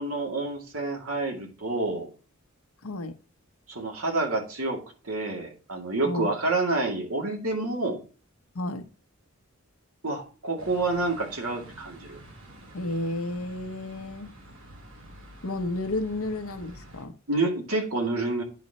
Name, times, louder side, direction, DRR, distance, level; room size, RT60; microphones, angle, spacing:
voice 1, 0.0-2.1 3.7-4.8 5.0-8.0 10.0-12.2 17.3-18.4, right 2 dB, 85° right, 1 dB, 2.4 m, -28 dB
voice 2, 2.8-3.2 6.0-6.3 8.5-8.9 12.7-14.3 15.4-17.2, left 2 dB, 80° left, 9 dB, 0.9 m, -32 dB
sound 1, 10.6-17.0, right 1 dB, 65° right, 2.6 m, -48 dB
9.5 x 4.2 x 4.2 m, 0.36 s
head